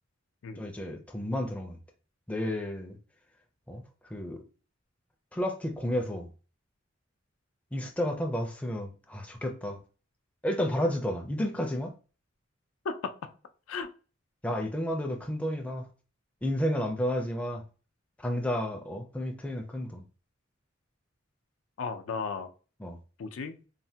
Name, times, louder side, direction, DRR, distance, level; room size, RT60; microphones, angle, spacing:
voice 1, 0.6-1.8 2.3-3.0 3.7-3.8 4.1-4.4 5.3-6.3 7.7-9.8 10.4-11.9 14.4-15.9 16.4-17.6 18.2-20.0 22.8-23.0, equal, 5° left, 0.4 m, -31 dB
voice 2, 12.8-13.3 13.7-13.9 21.8-22.5 23.2-23.6, left 5 dB, 85° left, 0.4 m, -35 dB
3.1 x 2.1 x 2.7 m
head